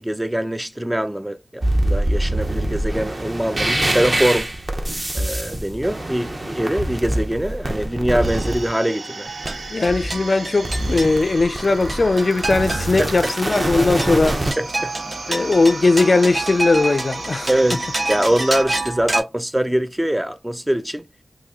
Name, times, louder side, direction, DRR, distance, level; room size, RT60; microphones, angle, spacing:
voice 1, 0.0-4.6 5.1-9.3 13.0-13.3 14.6-14.9 15.3-15.5 17.5-21.1, right 1 dB, 10° right, 0.4 m, -23 dB
sound 1, 1.6-8.7 9.4-10.3 10.6-14.5, right 1 dB, 35° right, 0.7 m, -24 dB
sound 2, 8.2-18.6, right 3 dB, 75° right, 0.5 m, -35 dB
sound 3, 9.3-19.2, right 2 dB, 55° right, 0.9 m, -29 dB
voice 2, 9.7-14.4 15.3-17.5, left 3 dB, 55° left, 0.4 m, -18 dB
2.9 x 2.6 x 3.5 m
wide cardioid pair, 65°, 0 cm